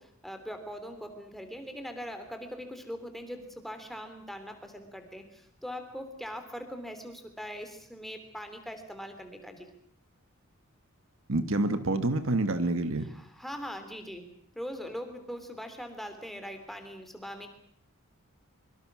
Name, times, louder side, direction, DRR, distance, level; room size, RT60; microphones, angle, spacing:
voice 1, 0.0-9.7 13.1-14.3 14.5-17.5, equal, ahead, 6 dB, 3.1 m, -41 dB
voice 2, 11.3-13.1, right 2 dB, 60° right, 10 dB, 1.5 m, -27 dB
24.5 x 24.0 x 6.2 m, 0.64 s
head